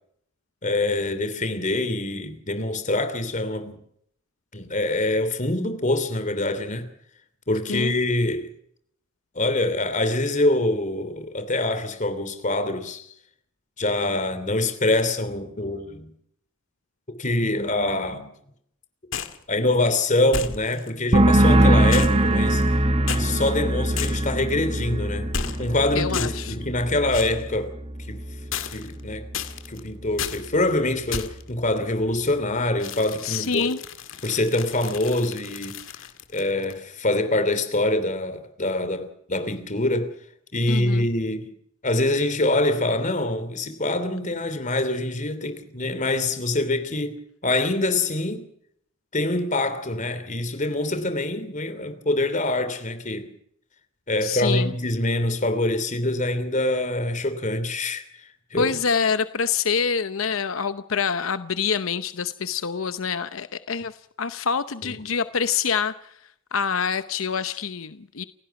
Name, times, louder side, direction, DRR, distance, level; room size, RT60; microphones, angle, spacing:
voice 1, 0.6-3.8 4.5-6.9 7.5-8.5 9.3-13.1 13.8-16.1 17.2-18.3 19.5-22.6 23.1-25.3 25.6-27.7 28.1-28.2 28.7-29.3 29.7-33.7 34.2-35.8 36.3-40.1 40.5-41.5 41.8-48.4 49.1-53.3 54.1-58.0 58.5-58.7 64.8-64.9, left 2 dB, 40° left, 3.1 m, -25 dB
sound 1, 19.1-19.4 20.3-20.9 21.9-22.8 23.1-23.2 24.0-24.4 25.3-25.8 26.1-26.5 27.1-27.4 28.5-29.0 29.3-29.8 30.2-30.5 31.1-31.5 32.8-36.8, left 7 dB, 70° left, 2.0 m, -33 dB
sound 2, 21.1-28.6 28.9-29.4, right 1 dB, 30° right, 1.1 m, -22 dB
voice 2, 25.9-26.5 33.2-33.8 40.7-41.1 54.2-54.7 58.6-66.1 66.5-68.2, left 6 dB, 85° left, 0.8 m, -26 dB
29.5 x 16.5 x 6.0 m
head